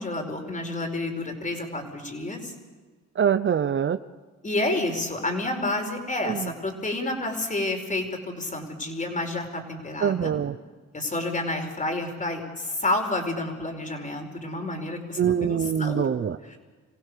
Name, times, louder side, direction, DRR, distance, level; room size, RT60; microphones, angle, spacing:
voice 1, 0.0-2.5 4.4-10.3 10.9-16.1 16.5-16.6, left 2 dB, 25° left, 4 dB, 4.9 m, -29 dB
voice 2, 3.2-4.0 6.2-6.5 10.0-10.6 15.2-16.4, right 8 dB, 40° right, 12 dB, 0.7 m, -24 dB
26.5 x 16.0 x 6.8 m, 1.4 s
cardioid pair, 90°, 30 cm